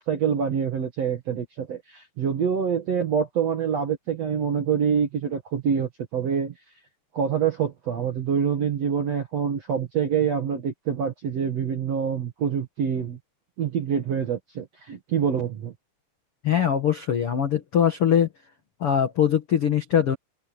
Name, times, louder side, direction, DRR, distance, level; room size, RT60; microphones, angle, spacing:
voice 1, 0.0-6.5 7.1-13.2 13.6-15.7, right 7 dB, 60° right, 1.7 m, -26 dB
voice 2, 16.4-18.3 18.8-20.1, left 9 dB, 70° left, 1.3 m, -22 dB
omnidirectional pair, 5.2 m